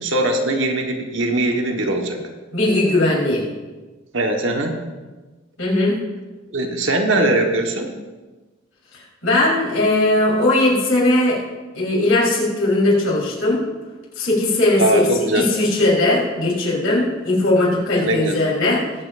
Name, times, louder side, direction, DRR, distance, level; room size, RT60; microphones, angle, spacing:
voice 1, 0.0-2.2 4.1-4.7 6.5-7.9 14.8-15.5 18.0-18.4, right 1 dB, 65° right, 2 dB, 1.3 m, -20 dB
voice 2, 2.5-3.4 5.6-6.0 9.2-11.4 11.7-13.6 14.2-15.1 15.3-18.8, left 2 dB, 80° left, -5 dB, 3.9 m, -18 dB
21.0 x 7.6 x 2.6 m, 1.2 s
head